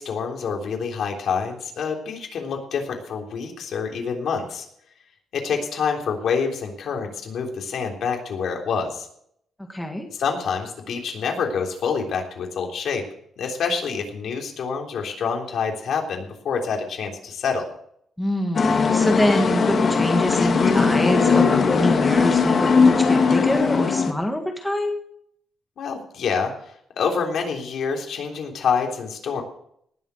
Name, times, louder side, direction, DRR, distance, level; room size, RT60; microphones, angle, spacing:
voice 1, 0.0-4.6 5.3-9.1 10.2-13.0 13.4-17.7 25.8-26.5 27.0-29.4, left 6 dB, 60° left, 1 dB, 3.5 m, -27 dB
voice 2, 9.7-10.1 18.2-25.0, left 1 dB, 5° left, 2 dB, 1.7 m, -25 dB
sound 1, 18.5-24.1, left 5 dB, 40° left, 2.2 m, -19 dB
19.0 x 7.7 x 6.4 m, 0.67 s
cardioid pair, 155°, 0 cm